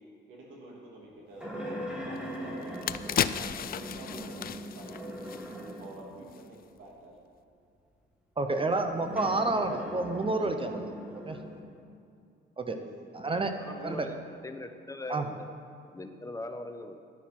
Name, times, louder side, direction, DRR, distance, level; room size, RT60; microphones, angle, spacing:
voice 1, 0.0-2.8 3.1-5.2 5.6-7.2 12.7-12.9 13.5-14.3, right 2 dB, 85° right, -2 dB, 2.7 m, -49 dB
sound 1, 1.4-6.0 6.8-6.9 9.0-11.6, equal, 5° right, 2.1 m, -40 dB
sound 2, 2.2-2.3 2.6-5.9 6.2-6.4, left 9 dB, 50° left, 0.4 m, -34 dB
voice 2, 8.4-10.9 11.3-11.4 12.6-12.7 13.1-13.5 13.8-14.1 15.1-15.3, right 2 dB, 25° right, 6 dB, 0.9 m, -29 dB
voice 3, 13.6-14.1 14.4-15.5 15.9-17.0, left 2 dB, 15° left, 7 dB, 0.9 m, -41 dB
11.0 x 9.1 x 5.9 m, 2.5 s
cardioid pair, 90°, 20 cm